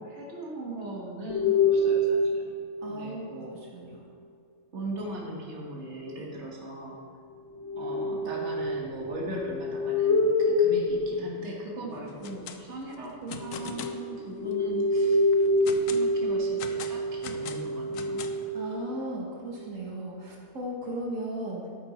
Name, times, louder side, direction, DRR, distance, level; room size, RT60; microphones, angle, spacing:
voice 1, 0.0-2.5 2.9-3.6 4.7-7.0 7.7-15.2 15.9-18.2, right 1 dB, 60° right, -2 dB, 1.9 m, -39 dB
sound 1, 1.3-3.1 7.6-12.0 13.4-19.6, left 1 dB, 65° left, 1.2 m, -27 dB
voice 2, 2.8-4.0 18.5-21.7, right 1 dB, 80° right, -3 dB, 1.9 m, -36 dB
sound 2, 12.1-12.6 12.9-14.0 14.5-14.6 15.1-16.1 16.6-18.5, left 7 dB, 80° left, 1.1 m, -41 dB
12.0 x 8.9 x 4.3 m, 2.3 s
omnidirectional pair, 1.4 m